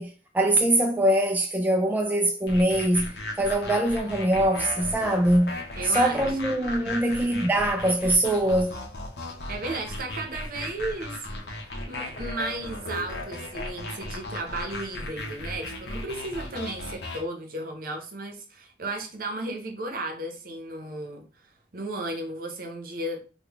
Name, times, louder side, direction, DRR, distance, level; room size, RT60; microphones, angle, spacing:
voice 1, 0.0-5.6 5.8-8.8, right 1 dB, 10° right, 0.3 m, -23 dB
sound 1, 2.5-17.2, left 2 dB, 65° left, 0.9 m, -36 dB
voice 2, 5.8-6.3 9.5-11.3 11.8-21.3 21.7-23.2, right 2 dB, 55° right, 0.8 m, -34 dB
3.7 x 2.3 x 3.4 m
head